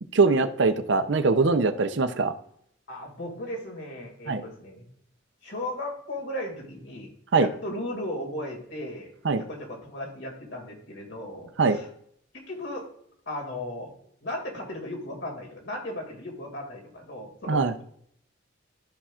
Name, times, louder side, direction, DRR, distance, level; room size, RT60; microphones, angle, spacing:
voice 1, 0.1-2.3 4.3-4.4 7.3-7.5 9.2-9.4 11.6-11.8 17.5-17.7, right 4 dB, 65° right, 9 dB, 0.6 m, -22 dB
voice 2, 2.9-4.8 5.4-9.1 9.4-11.9 12.3-12.9 13.3-13.9 14.2-17.8, left 1 dB, 60° left, 1 dB, 2.4 m, -36 dB
13.5 x 5.7 x 2.4 m, 0.67 s
head